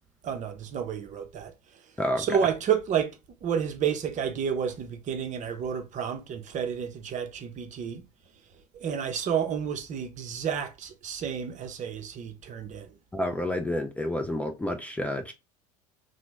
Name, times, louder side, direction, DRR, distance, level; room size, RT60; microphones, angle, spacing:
voice 1, 0.2-1.5 2.2-8.0 8.7-12.9, right 8 dB, 40° right, 0.6 m, -30 dB
voice 2, 13.1-15.3, left 1 dB, 5° left, 0.4 m, -29 dB
2.9 x 2.1 x 3.3 m
hypercardioid pair, 75°, 20 cm